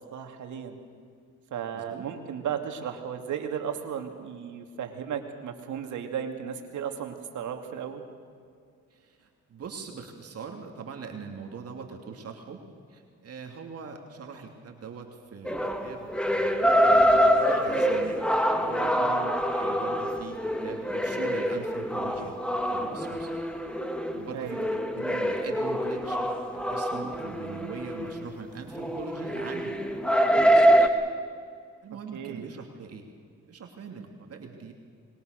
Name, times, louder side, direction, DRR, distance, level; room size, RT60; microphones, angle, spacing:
voice 1, 0.1-0.7 1.5-8.0 19.0-19.4 24.3-24.7 32.1-32.5, right 8 dB, 75° right, 5 dB, 2.8 m, -35 dB
voice 2, 1.7-2.0 8.9-12.6 12.9-18.3 18.6-23.3 24.1-26.2 26.5-29.8 30.3-30.9 31.8-33.1 33.5-34.7, right 5 dB, 55° right, 3 dB, 2.9 m, -42 dB
sound 1, 15.5-30.9, equal, 5° left, 2.1 m, -25 dB
25.5 x 22.5 x 6.7 m, 2.2 s
cardioid pair, 90°, 30 cm